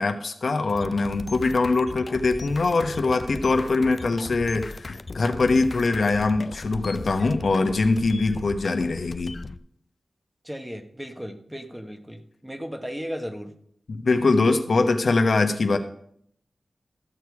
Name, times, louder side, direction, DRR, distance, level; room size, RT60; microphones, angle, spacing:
voice 1, 0.0-9.3 13.9-15.8, left 3 dB, 75° left, 6 dB, 1.0 m, -22 dB
sound 1, 0.7-9.6, left 3 dB, 55° left, 0.5 m, -38 dB
voice 2, 10.4-13.6, equal, 10° right, 6 dB, 1.2 m, -35 dB
13.5 x 6.7 x 4.8 m, 0.67 s
wide cardioid pair, 65°, 0 cm